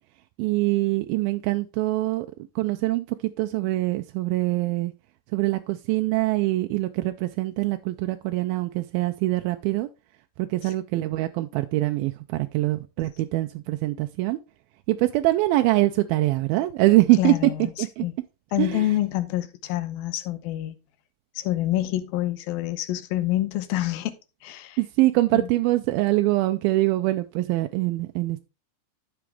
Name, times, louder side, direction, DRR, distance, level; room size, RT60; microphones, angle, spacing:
voice 1, 0.4-2.3 2.6-3.1 3.4-4.9 5.3-9.9 10.4-14.4 14.9-17.3 17.8-18.1 18.6-18.8 24.8-28.4, right 18 dB, 85° right, 2.4 m, -23 dB
voice 2, 17.2-18.1 18.5-20.8 21.4-24.8 25.3-25.5, left 14 dB, 85° left, 2.7 m, -27 dB
12.5 x 6.1 x 3.4 m
omnidirectional pair, 4.2 m